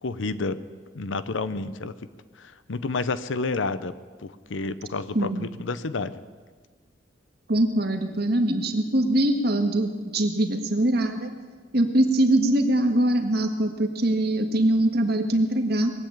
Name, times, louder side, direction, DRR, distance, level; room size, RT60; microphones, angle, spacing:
voice 1, 0.0-0.6 0.9-1.9 2.4-3.9 4.2-6.2, left 3 dB, 85° left, 14 dB, 0.7 m, -30 dB
voice 2, 7.5-11.3 11.7-15.9, right 1 dB, 55° right, 5 dB, 1.5 m, -22 dB
20.5 x 8.0 x 8.7 m, 1.5 s
head